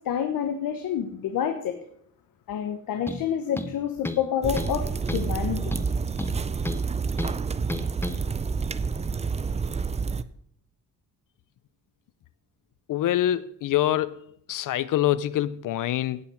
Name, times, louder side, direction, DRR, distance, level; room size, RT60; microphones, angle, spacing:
voice 1, 0.0-1.8 2.5-5.7, left 9 dB, 80° left, 6 dB, 1.2 m, -28 dB
sound 1, 3.1-3.3 3.6-4.3 4.6-4.8 5.1-5.3 5.7-6.9 7.2-7.4 7.7-8.2, left 2 dB, 5° left, 0.7 m, -33 dB
sound 2, 4.4-10.2, right 5 dB, 20° right, 0.4 m, -28 dB
voice 2, 12.9-14.2 14.5-16.2, left 12 dB, 65° left, 17 dB, 0.5 m, -25 dB
17.0 x 5.7 x 6.4 m, 0.67 s
cardioid pair, 145°, 34 cm